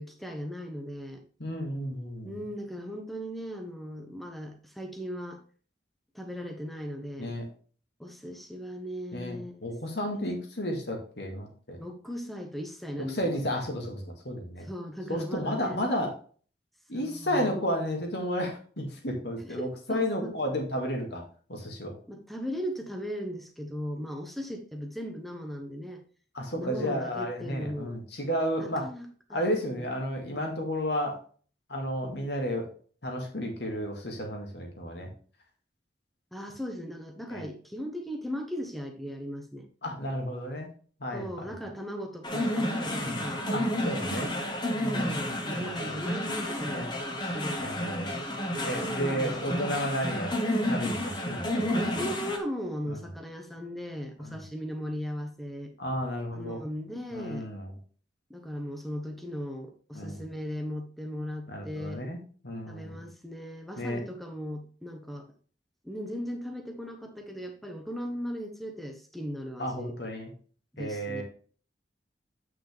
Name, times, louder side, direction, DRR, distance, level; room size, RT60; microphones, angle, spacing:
voice 1, 0.0-1.2 2.2-5.4 6.1-7.4 8.0-9.7 10.1-10.2 11.8-13.4 14.6-15.9 16.9-17.6 19.5-20.4 22.1-26.0 26.6-28.0 28.6-29.8 36.3-39.7 41.1-43.9 44.2-44.5 44.9-46.9 47.3-47.8 48.8-49.7 51.6-55.7 56.3-57.5 58.3-62.0 62.7-65.3 65.8-69.9 70.7-71.2, equal, ahead, 4 dB, 1.1 m, -38 dB
voice 2, 1.4-2.3 7.2-7.4 9.1-11.8 13.1-14.7 15.1-16.1 16.9-21.2 21.5-22.0 26.3-28.9 29.3-31.2 31.7-32.7 33.0-35.1 37.3-37.5 39.8-40.7 41.0-41.5 43.0-43.2 43.5-44.3 44.7-46.0 46.7-46.9 47.6-48.1 48.6-50.4 50.7-51.8 52.9-53.0 54.2-54.4 55.8-56.6 57.1-57.7 59.9-60.2 61.5-63.0 63.8-64.0 69.6-70.3 70.8-71.2, equal, 70° left, 2 dB, 2.2 m, -32 dB
sound 1, 42.2-52.4, equal, 25° left, 1.3 m, -31 dB
8.5 x 6.0 x 3.4 m, 0.42 s
head